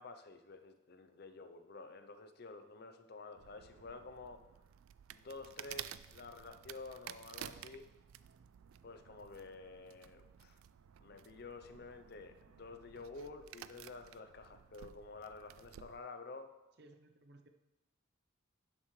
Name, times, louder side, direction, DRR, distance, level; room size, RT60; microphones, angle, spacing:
voice 1, 0.0-4.4 5.1-7.9 8.8-10.6 11.0-16.5, left 3 dB, 50° left, 9 dB, 0.5 m, -50 dB
sound 1, 3.4-16.0, right 11 dB, 85° right, 0.3 m, -53 dB
voice 2, 16.8-17.5, right 2 dB, 50° right, 6 dB, 0.7 m, -60 dB
11.0 x 7.3 x 3.2 m, 1.0 s
head